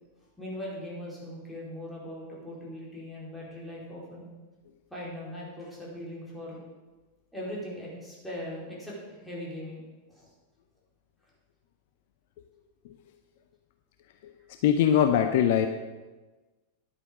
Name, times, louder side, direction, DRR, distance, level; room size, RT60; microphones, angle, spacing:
voice 1, 0.4-4.3 4.9-6.6 7.3-9.8 10.1-10.3, left 1 dB, 5° left, -7 dB, 4.4 m, -40 dB
voice 2, 14.6-15.7, left 9 dB, 50° left, 7 dB, 0.6 m, -22 dB
10.5 x 8.4 x 5.1 m, 1.2 s
figure-of-eight pair, 90°, 0 cm